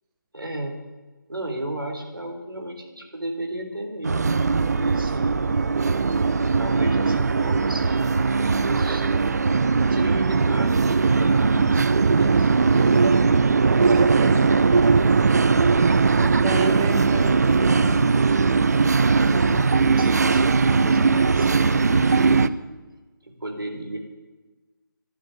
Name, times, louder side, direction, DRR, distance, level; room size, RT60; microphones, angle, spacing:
voice 1, 0.3-0.8 1.3-5.5 6.6-9.0 9.9-12.8 19.1-22.5 23.2-24.0, right 1 dB, 80° right, 3 dB, 4.2 m, -33 dB
sound 1, 4.0-22.5, right 4 dB, 50° right, 0.6 m, -19 dB
voice 2, 12.7-13.3 13.7-14.5 16.1-18.0, right 4 dB, 15° right, 2 dB, 1.2 m, -31 dB
12.5 x 12.0 x 9.5 m, 1.3 s
figure-of-eight pair, 155°, 11 cm